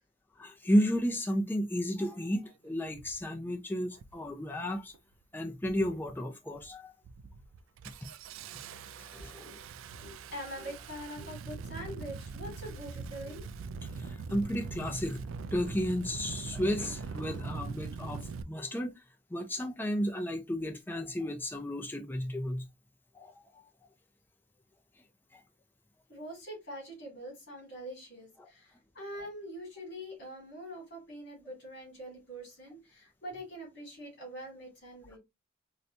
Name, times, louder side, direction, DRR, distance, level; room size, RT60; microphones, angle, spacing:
voice 1, 0.4-4.9 5.3-6.9 9.0-9.5 14.0-15.2 15.5-18.9 19.3-22.6 23.1-23.3 25.3-25.4, equal, 10° left, 0.4 m, -32 dB
Engine starting, 2.1-2.2 2.9-3.2 3.9-4.3 4.6-5.1 5.6-6.1 6.5-6.7 7.0-18.4, right 5 dB, 80° right, 0.3 m, -42 dB
voice 2, 9.2-13.5 26.1-35.2, equal, 55° left, 2.3 m, -44 dB
3.9 x 2.2 x 2.6 m
head